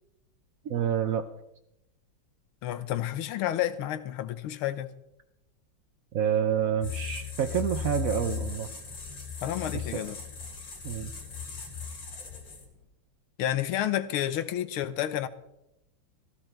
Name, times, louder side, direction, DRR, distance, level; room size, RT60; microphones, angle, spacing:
voice 1, 0.6-1.3 6.1-8.7 9.7-10.0 10.8-11.1, right 9 dB, 80° right, 0.7 m, -28 dB
voice 2, 2.6-4.9 9.4-10.2 13.4-15.3, left 12 dB, 85° left, 1.7 m, -30 dB
sound 1, 6.8-12.8, left 6 dB, 60° left, 2.9 m, -37 dB
16.0 x 13.0 x 4.5 m
omnidirectional pair, 2.3 m